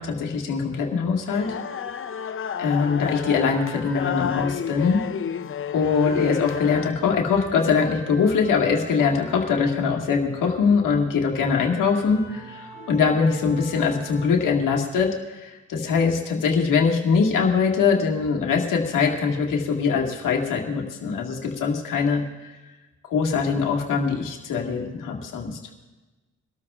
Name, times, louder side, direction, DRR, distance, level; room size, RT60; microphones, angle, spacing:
voice 1, 0.0-1.5 2.6-5.0 5.7-22.5 23.1-25.6, left 5 dB, 85° left, 0 dB, 1.9 m, -22 dB
sound 1, 1.3-6.9, left 8 dB, 45° left, 0.6 m, -31 dB
sound 2, 1.3-5.4 5.7-14.3, equal, 85° right, 4.7 m, -43 dB
24.0 x 13.0 x 2.4 m, 1.2 s
cardioid pair, 60°, 31 cm